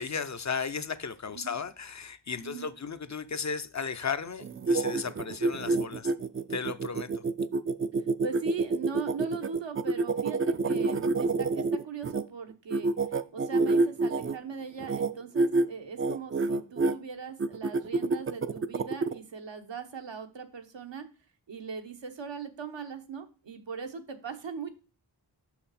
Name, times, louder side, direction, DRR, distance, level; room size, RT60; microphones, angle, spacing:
voice 1, 0.0-6.1 6.5-7.2, left 5 dB, 40° left, 0.5 m, -35 dB
sound 1, 4.4-12.2 12.7-14.4 14.8-15.1 15.4-15.7 16.0-16.9 17.4-19.1, right 3 dB, 30° right, 0.4 m, -27 dB
voice 2, 8.0-12.9 13.3-21.1 21.5-24.7, right 6 dB, 80° right, 1.1 m, -40 dB
6.1 x 5.8 x 4.1 m
wide cardioid pair, 65°, 44 cm